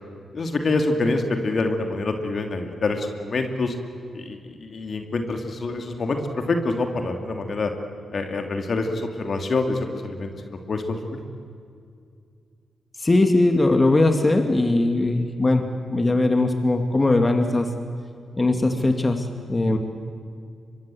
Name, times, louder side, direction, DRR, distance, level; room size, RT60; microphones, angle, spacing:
voice 1, 0.3-3.7 4.1-7.7 8.1-11.2, left 3 dB, 60° left, 5 dB, 2.8 m, -26 dB
voice 2, 13.0-15.6 15.9-17.7 18.4-19.8, left 2 dB, 35° left, 6 dB, 2.5 m, -20 dB
24.5 x 22.5 x 7.9 m, 2.3 s
supercardioid pair, 40°, 0 cm